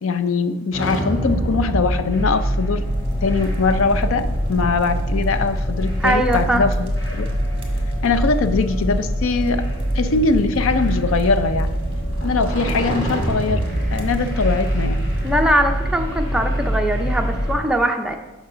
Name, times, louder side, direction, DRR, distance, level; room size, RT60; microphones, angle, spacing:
voice 1, 0.0-2.9 3.2-7.3 8.0-11.7 12.2-15.1, left 4 dB, 75° left, 11 dB, 0.5 m, -22 dB
sound 1, 0.7-17.6, equal, 55° left, 2.7 m, -24 dB
sound 2, 2.8-15.5, equal, 25° right, 1.2 m, -31 dB
voice 2, 6.0-6.6 15.2-18.2, right 1 dB, 5° right, 3 dB, 0.5 m, -21 dB
7.0 x 5.7 x 5.0 m, 1.1 s
head